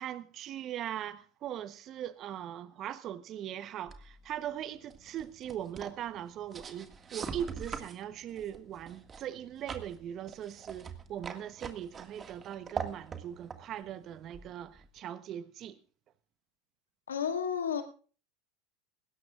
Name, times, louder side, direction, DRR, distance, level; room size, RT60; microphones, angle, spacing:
voice 1, 0.0-15.8, right 10 dB, 45° right, 1.0 m, -40 dB
sound 1, 3.9-15.0, right 6 dB, 30° right, 1.9 m, -44 dB
voice 2, 17.1-17.8, left 7 dB, 90° left, 2.0 m, -31 dB
20.5 x 17.0 x 2.5 m
hypercardioid pair, 85°, 0 cm